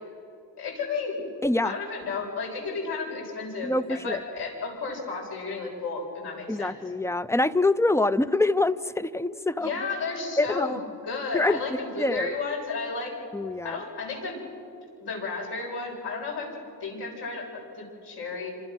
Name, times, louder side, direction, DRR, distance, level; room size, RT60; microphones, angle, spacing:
voice 1, 0.6-1.2 1.6-6.8 9.6-10.8 11.0-13.1 13.6-14.3 15.0-16.5 16.8-18.5, left 4 dB, 80° left, -2 dB, 7.8 m, -33 dB
voice 2, 1.4-1.7 3.6-4.2 6.5-9.7 10.4-10.8 11.3-11.6 12.0-12.3 13.3-13.8, left 2 dB, 5° left, 15 dB, 0.6 m, -25 dB
27.5 x 26.5 x 6.3 m, 2.5 s
cardioid pair, 105°, 39 cm